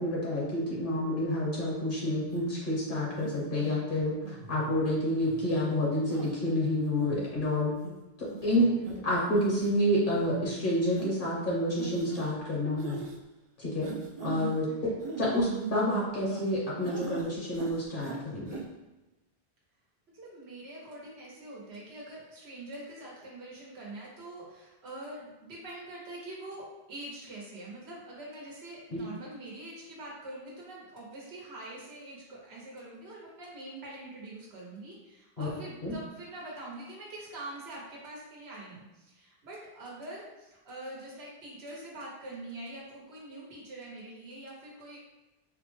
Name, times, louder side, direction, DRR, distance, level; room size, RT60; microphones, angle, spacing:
voice 1, 0.0-7.7 8.4-8.7 9.0-13.0 13.6-13.9 14.2-14.7 15.2-18.6 28.9-29.0 35.4-35.5 35.8-35.9, left 1 dB, 60° left, -5 dB, 0.9 m, -29 dB
sound 1, 2.3-2.5 3.2-3.7 4.2-4.7 5.3-5.5 6.1-6.3 6.8-7.3 7.8-7.9 8.3-8.5 8.8-9.0 9.4-9.7 10.1-10.2 11.0-11.1 11.8-12.3 12.8-13.2 13.8-14.5 15.0-16.5 16.8-17.3 17.5-18.2 18.5-18.6, right 5 dB, 55° right, 0.4 m, -39 dB
voice 2, 8.5-8.9 14.7-15.0 20.1-45.0, right 1 dB, 90° right, -4 dB, 1.0 m, -44 dB
3.5 x 2.1 x 3.0 m, 1.0 s
omnidirectional pair, 1.0 m